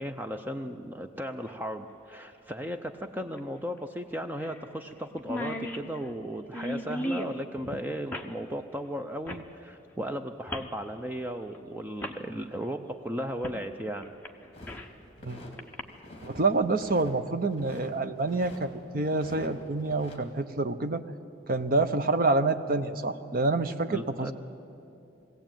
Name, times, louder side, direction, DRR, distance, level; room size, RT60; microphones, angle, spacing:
voice 1, 0.0-14.1 23.9-24.3, equal, 10° right, 7 dB, 0.5 m, -36 dB
sound 1, 1.5-1.6 3.3-3.4 3.8-3.9 4.4-4.6 4.9-5.0 5.2-7.4 8.1-8.3 9.3-9.5 10.5-10.7 11.5-11.6 12.0-12.2 13.4-13.6 14.0-15.0 15.6-15.8, equal, 10° left, 1.0 m, -36 dB
sound 2, 14.5-15.6 15.9-16.4 16.7-17.9 18.2-18.6 19.0-20.2, left 1 dB, 30° left, 2.7 m, -47 dB
voice 2, 16.2-21.0 21.5-24.3, right 3 dB, 45° right, 9 dB, 0.8 m, -27 dB
22.0 x 16.5 x 9.0 m, 2.8 s
head